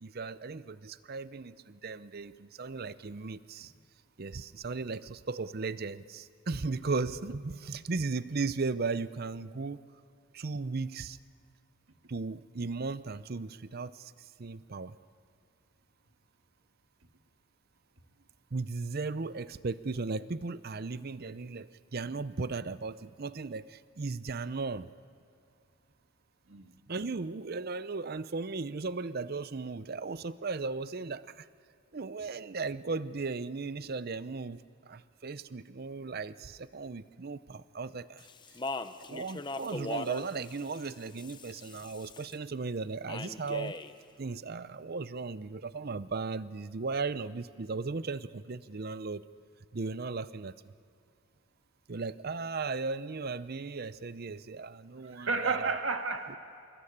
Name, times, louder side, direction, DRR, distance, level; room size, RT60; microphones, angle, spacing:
voice 1, 0.0-3.7 4.2-9.8 10.3-11.2 12.1-14.1 14.4-14.9 18.5-24.9 26.9-31.5 31.9-38.3 39.1-43.8 44.2-49.2 49.7-50.5 51.9-55.8, right 4 dB, 45° right, 15 dB, 0.6 m, -36 dB
Speech, 38.2-42.3 43.1-43.9, left 2 dB, 20° left, 0.7 m, -40 dB
voice 2, 55.0-56.4, right 4 dB, 60° right, 5 dB, 2.0 m, -31 dB
26.5 x 22.5 x 8.7 m, 2.5 s
head